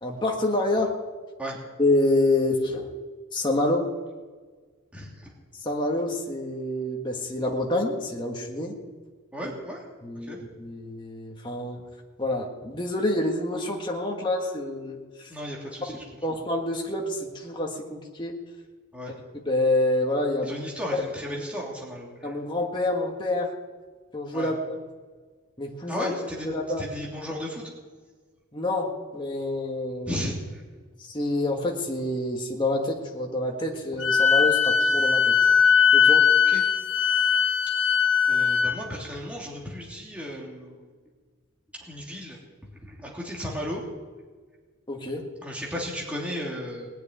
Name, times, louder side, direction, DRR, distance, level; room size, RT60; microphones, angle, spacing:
voice 1, 0.0-0.9 1.8-2.9 3.3-3.9 5.6-8.7 9.4-9.5 10.0-11.8 12.2-15.0 16.2-18.3 19.4-20.6 20.9-21.0 22.2-23.5 24.1-24.8 25.6-26.1 26.4-26.9 28.5-30.2 31.1-35.3 35.9-36.3 44.9-45.3, left 2 dB, 20° left, 0 dB, 1.6 m, -27 dB
voice 2, 4.9-5.3 9.3-9.8 10.3-10.4 15.3-16.0 18.9-19.1 20.4-22.3 24.3-24.5 25.9-26.5 26.8-27.6 30.1-30.6 36.5-36.6 38.3-40.9 41.8-42.4 42.9-43.8 45.4-46.9, equal, 5° right, -4 dB, 3.0 m, -34 dB
Wind instrument woodwind instrument, 34.0-38.8, left 6 dB, 55° left, 0.9 m, -20 dB
19.5 x 6.9 x 9.7 m, 1.5 s
head